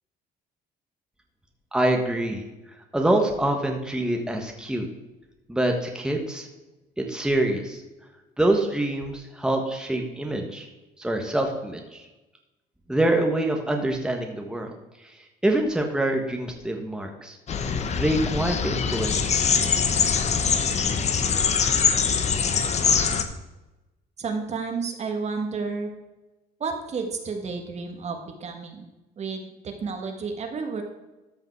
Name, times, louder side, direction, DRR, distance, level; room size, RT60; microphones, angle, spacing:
voice 1, 1.7-2.4 2.9-4.9 5.5-6.5 7.0-7.8 8.4-10.7 11.0-12.1 12.9-14.7 15.0-15.1 15.4-17.4 17.9-19.5, right 1 dB, 5° right, 2 dB, 1.4 m, -25 dB
sound 1, 17.5-23.2, left 6 dB, 40° left, 1.0 m, -23 dB
voice 2, 24.2-25.9 26.6-28.9 29.2-30.8, right 4 dB, 40° right, 4 dB, 1.7 m, -31 dB
13.5 x 5.7 x 4.6 m, 1.1 s
cardioid pair, 110°, 17 cm